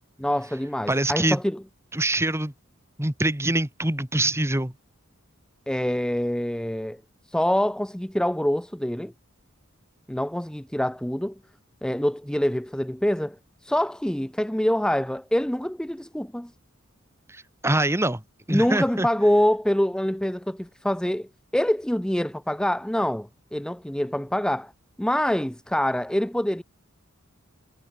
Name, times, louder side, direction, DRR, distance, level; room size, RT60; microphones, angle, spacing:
voice 1, 0.2-1.6 5.7-7.0 7.3-9.1 10.1-11.4 11.8-13.4 13.6-16.5 18.5-24.7 25.0-26.6, equal, 5° left, 0.5 m, -25 dB
voice 2, 0.9-1.4 1.9-2.5 3.0-4.7 17.3-18.2 18.5-19.1, right 1 dB, 15° right, 1.8 m, -24 dB
head